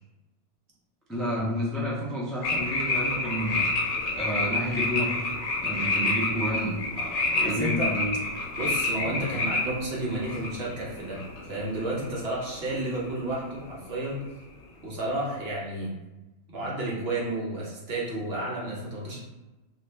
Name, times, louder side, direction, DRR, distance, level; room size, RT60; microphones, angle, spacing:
voice 1, 1.1-3.7 4.0-5.1 5.6-8.1 9.0-9.5, equal, ahead, -6 dB, 0.4 m, -30 dB
sound 1, 2.4-12.7 12.9-13.3, left 2 dB, 80° left, 0.9 m, -29 dB
voice 2, 7.4-7.9 8.5-14.2 14.8-15.9 16.5-19.2, right 1 dB, 60° right, -5 dB, 1.0 m, -31 dB
2.7 x 2.4 x 3.2 m, 1.1 s
omnidirectional pair, 1.2 m